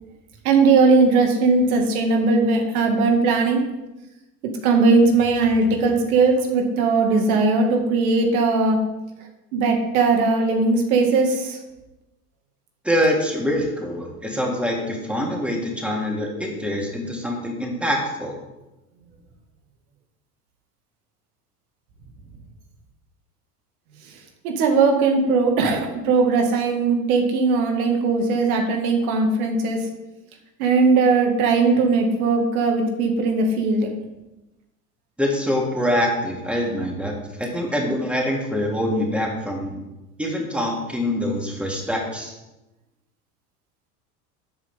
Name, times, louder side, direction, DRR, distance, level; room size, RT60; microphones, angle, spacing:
voice 1, 0.4-3.6 4.6-8.8 9.5-11.6 24.4-29.8 30.6-33.9, right 4 dB, 65° right, 3 dB, 2.3 m, -19 dB
voice 2, 12.8-18.3 35.2-37.1 37.4-39.8 40.2-42.3, equal, ahead, -1 dB, 3.0 m, -24 dB
13.0 x 8.0 x 3.7 m, 1.0 s
hypercardioid pair, 85°, 47 cm